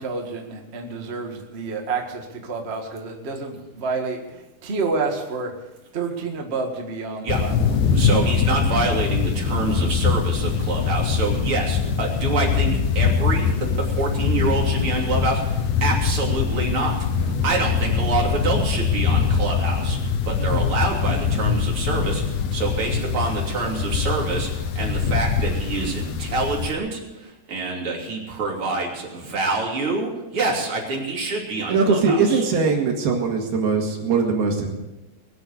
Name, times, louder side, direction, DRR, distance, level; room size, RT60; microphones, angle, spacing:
voice 1, 0.0-5.5 5.9-7.8, right 4 dB, 55° right, 2 dB, 0.7 m, -29 dB
sound 1, 7.3-26.7, left 6 dB, 80° left, 3.1 m, -23 dB
voice 2, 7.9-32.4, right 3 dB, 35° right, -2 dB, 3.6 m, -27 dB
voice 3, 31.7-34.8, right 4 dB, 80° right, 1 dB, 4.0 m, -21 dB
21.0 x 8.2 x 6.7 m, 1.0 s
omnidirectional pair, 4.4 m